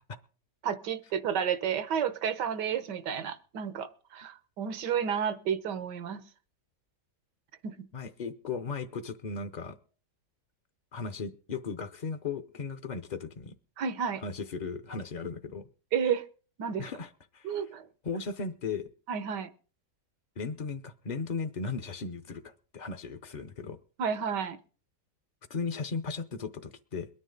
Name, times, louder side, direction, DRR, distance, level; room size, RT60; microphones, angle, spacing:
voice 1, 0.6-6.2 7.6-7.9 13.8-14.2 15.9-16.2 16.6-16.9 17.4-17.8 19.1-19.5 24.0-24.6, right 7 dB, 90° right, 13 dB, 1.6 m, -31 dB
voice 2, 7.9-9.8 10.9-13.5 14.2-15.7 16.8-17.7 18.0-18.9 20.4-23.8 25.5-27.1, left 5 dB, 55° left, 10 dB, 0.5 m, -36 dB
22.0 x 9.9 x 3.9 m, 0.39 s
omnidirectional pair, 1.8 m